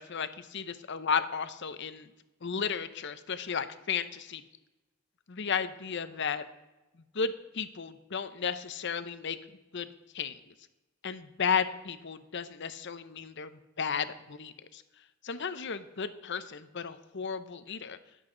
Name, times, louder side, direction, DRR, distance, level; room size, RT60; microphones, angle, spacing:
voice 1, 0.0-2.1 2.4-4.4 5.3-6.4 7.1-9.4 9.7-9.9 10.1-10.4 11.0-14.8 15.2-18.0, left 6 dB, 55° left, 12 dB, 0.7 m, -34 dB
20.0 x 8.0 x 3.8 m, 1.1 s
head